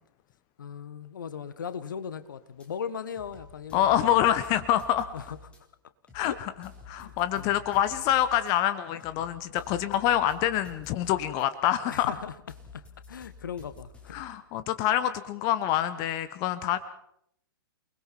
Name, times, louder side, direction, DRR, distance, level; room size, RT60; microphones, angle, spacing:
voice 1, 0.6-4.2 5.1-5.4 6.2-6.4 7.0-7.6 9.6-9.7 11.8-12.3 12.7-14.2, left 7 dB, 60° left, 14 dB, 1.4 m, -38 dB
sound 1, 2.6-2.7 3.2-5.6 6.1-8.5 9.0-11.5 11.9-14.3, left 4 dB, 10° left, 4.2 m, -50 dB
voice 2, 3.7-5.1 6.1-12.1 14.1-16.8, left 11 dB, 30° left, 14 dB, 1.0 m, -26 dB
29.0 x 20.5 x 4.5 m, 0.73 s
figure-of-eight pair, 110°, 12 cm